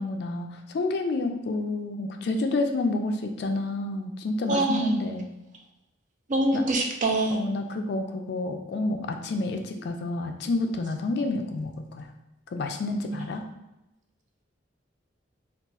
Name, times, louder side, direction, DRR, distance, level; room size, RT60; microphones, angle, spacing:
voice 1, 0.0-5.3 6.5-6.6 7.3-12.1 12.5-13.4, left 2 dB, 55° left, 5 dB, 0.3 m, -29 dB
voice 2, 4.5-5.0 6.3-7.4, right 2 dB, 40° right, 1 dB, 0.4 m, -24 dB
3.9 x 2.4 x 2.3 m, 0.95 s
head